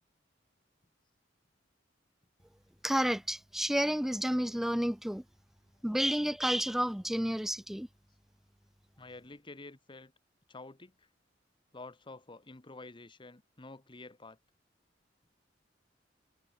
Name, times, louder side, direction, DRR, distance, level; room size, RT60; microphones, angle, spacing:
voice 1, 2.8-5.2 5.8-7.9, equal, ahead, 0.4 m, -30 dB
voice 2, 9.0-10.1 10.5-11.1 11.7-14.4, left 3 dB, 25° left, 1.1 m, -49 dB
head